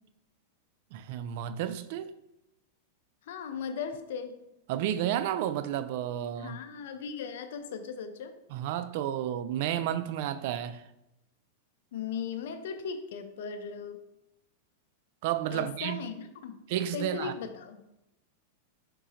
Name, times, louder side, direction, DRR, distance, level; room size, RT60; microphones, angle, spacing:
voice 1, 0.9-2.1 4.7-6.6 8.5-10.8 15.2-16.0 16.7-17.3, right 11 dB, 60° right, 0.3 m, -31 dB
voice 2, 3.2-4.4 6.4-8.4 11.9-14.1 15.5-16.6 16.9-17.8, left 6 dB, 75° left, 0.5 m, -38 dB
4.8 x 3.7 x 2.9 m
supercardioid pair, 135°, 0 cm